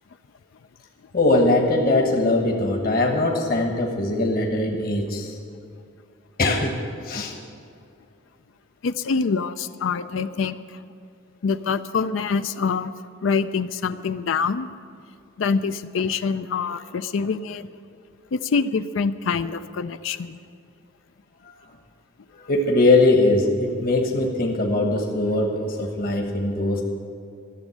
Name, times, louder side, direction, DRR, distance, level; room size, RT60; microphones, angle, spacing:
voice 1, 1.1-5.4 6.4-6.8 7.0-7.3 22.3-26.8, left 2 dB, 45° left, 2 dB, 1.3 m, -21 dB
voice 2, 8.8-10.8 11.4-12.9 13.2-14.7 15.4-17.7 18.3-20.4, left 5 dB, 65° left, 12 dB, 0.4 m, -25 dB
14.0 x 7.3 x 9.8 m, 2.4 s
head